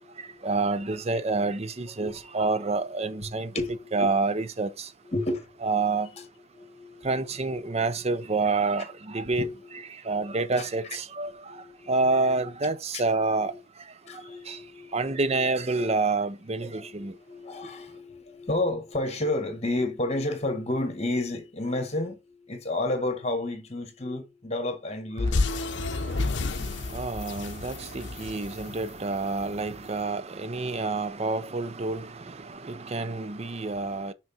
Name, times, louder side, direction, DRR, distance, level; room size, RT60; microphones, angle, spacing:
voice 1, 0.4-3.5 3.9-4.9 5.6-6.1 7.0-11.3 11.9-13.5 14.5-14.6 14.9-17.1 26.0-34.1, right 3 dB, 30° right, 0.6 m, -28 dB
voice 2, 3.5-4.1 5.1-5.5 6.2-6.3 6.5-7.1 9.4-9.5 10.5-10.6 11.5-11.9 14.0-15.0 16.8-25.5, left 2 dB, 35° left, 1.6 m, -31 dB
sound 1, 25.2-29.6, left 3 dB, 60° left, 0.7 m, -30 dB
6.3 x 5.8 x 4.2 m
head